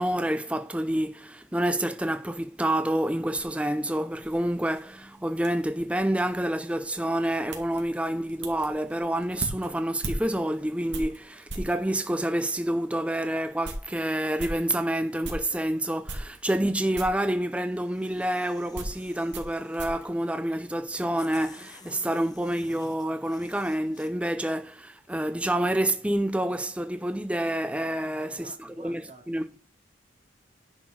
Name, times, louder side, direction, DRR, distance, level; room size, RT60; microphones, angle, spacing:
voice 1, 0.0-28.5 28.8-29.0 29.3-29.6, right 1 dB, 5° right, 0.5 m, -28 dB
sound 1, 3.2-11.8 12.5-12.6 13.1-13.2 13.4-15.6 16.0-16.7 16.9-17.3 18.1-21.0 21.3-21.9, right 2 dB, 70° right, 2.4 m, -40 dB
sound 2, 17.7-20.1 20.8-20.9 21.2-24.1, left 3 dB, 20° left, 1.1 m, -52 dB
voice 2, 27.8-29.6, right 1 dB, 35° right, 3.3 m, -50 dB
10.0 x 5.9 x 4.7 m
head